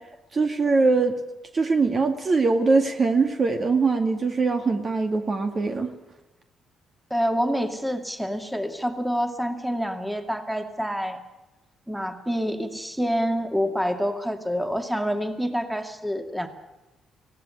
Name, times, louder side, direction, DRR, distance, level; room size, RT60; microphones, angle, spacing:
voice 1, 0.3-1.1 1.5-5.9, right 4 dB, 40° right, 6 dB, 2.0 m, -22 dB
voice 2, 7.1-11.2 11.9-16.5, equal, 5° right, 6 dB, 2.3 m, -27 dB
19.0 x 16.0 x 9.8 m, 1.0 s
cardioid pair, 90°, 0 cm